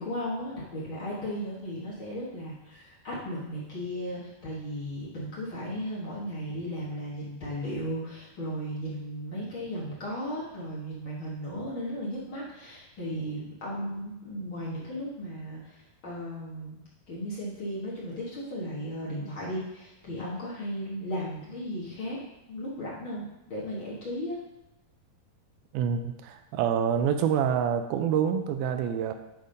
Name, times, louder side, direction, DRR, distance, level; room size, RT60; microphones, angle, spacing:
voice 1, 0.0-16.8 17.1-22.2 22.5-24.4, equal, 50° left, -7 dB, 1.6 m, -35 dB
voice 2, 25.7-29.1, right 8 dB, 80° right, 7 dB, 2.3 m, -27 dB
11.0 x 3.6 x 5.2 m, 0.93 s
omnidirectional pair, 4.7 m